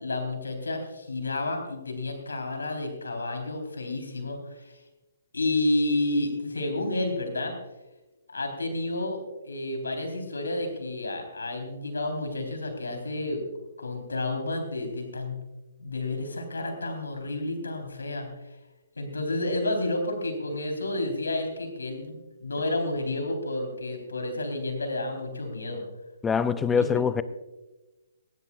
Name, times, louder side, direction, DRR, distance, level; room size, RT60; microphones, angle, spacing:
voice 1, 0.0-4.8 5.3-7.5 8.3-13.4 13.8-15.4 15.8-18.3 19.0-25.8 26.7-26.9, left 2 dB, 75° left, 3.8 m, -30 dB
voice 2, 26.2-27.2, left 6 dB, 10° left, 0.5 m, -24 dB
19.0 x 16.5 x 2.4 m
figure-of-eight pair, 130°, 0 cm